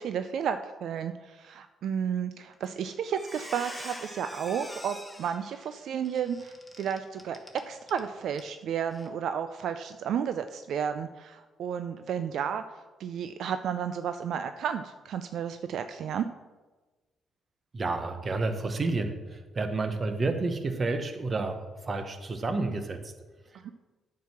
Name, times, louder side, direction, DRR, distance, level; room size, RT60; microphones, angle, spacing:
voice 1, 0.0-16.3, right 8 dB, 70° right, 9 dB, 0.4 m, -32 dB
Squeak, 2.5-2.8 3.1-8.0 8.3-8.5 8.9-9.1, left 1 dB, 5° left, 1.2 m, -45 dB
voice 2, 17.7-23.1 23.5-23.7, right 3 dB, 35° right, 8 dB, 1.0 m, -30 dB
9.1 x 4.7 x 6.0 m, 1.3 s
cardioid pair, 90°, 0 cm